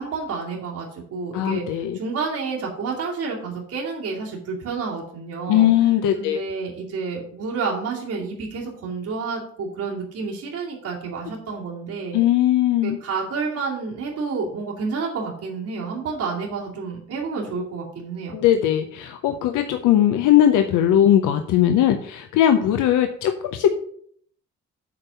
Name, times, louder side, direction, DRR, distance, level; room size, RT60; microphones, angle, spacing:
voice 1, 0.0-5.7 6.2-12.2 12.8-18.4, right 4 dB, 80° right, -7 dB, 2.5 m, -29 dB
voice 2, 1.3-2.0 5.5-6.4 12.1-13.0 18.3-23.7, left 11 dB, 85° left, 7 dB, 0.7 m, -19 dB
8.6 x 3.7 x 6.7 m, 0.62 s
cardioid pair, 90°, 30 cm